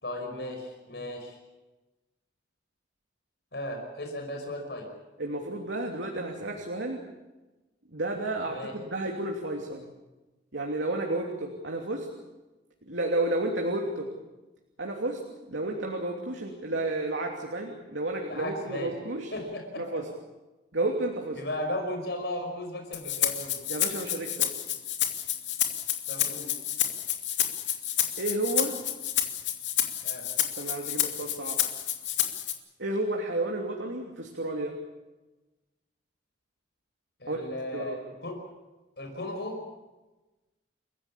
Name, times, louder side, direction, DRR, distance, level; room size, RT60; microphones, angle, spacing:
voice 1, 0.0-1.4 3.5-4.9 8.5-8.7 18.2-18.9 19.3-20.0 21.3-23.6 26.1-26.5 30.0-30.3 37.2-38.4 39.0-39.6, left 1 dB, 65° left, 3 dB, 5.4 m, -36 dB
voice 2, 5.2-7.0 7.9-9.8 10.5-12.1 12.9-14.1 14.8-15.2 15.5-19.3 19.8-20.1 20.7-21.4 23.7-24.5 28.2-28.8 30.6-31.6 32.8-34.7 37.3-37.4 37.7-38.0, right 2 dB, 90° right, 1 dB, 3.0 m, -31 dB
Rattle (instrument), 22.9-32.5, left 11 dB, 85° left, 2.5 m, -29 dB
29.5 x 15.5 x 8.7 m, 1.1 s
head